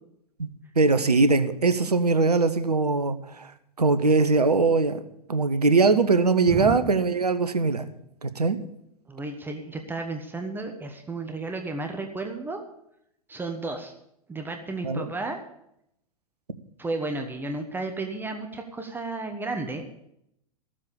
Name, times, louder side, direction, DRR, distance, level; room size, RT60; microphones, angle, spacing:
voice 1, 0.8-3.5 3.8-5.0 5.3-7.8 8.2-8.6 14.8-15.1, right 3 dB, 80° right, 11 dB, 1.0 m, -21 dB
voice 2, 6.5-6.8 9.1-12.6 13.3-13.9 14.3-15.4 16.8-19.9, right 3 dB, 10° right, 4 dB, 1.2 m, -33 dB
14.5 x 7.5 x 6.8 m, 0.77 s
figure-of-eight pair, 100°, 20 cm